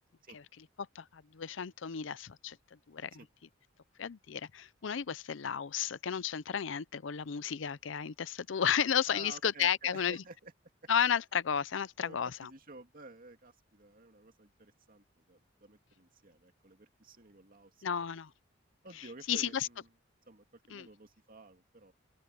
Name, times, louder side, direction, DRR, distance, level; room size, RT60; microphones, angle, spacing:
voice 1, 0.9-2.6 2.9-3.2 4.0-10.2 10.9-12.5 17.8-18.3 19.0-19.7 20.7-20.9, left 8 dB, 70° left, 0.6 m, -33 dB
voice 2, 9.1-10.5 12.0-17.8 18.8-19.9 20.3-21.9, right 3 dB, 45° right, 2.4 m, -52 dB
head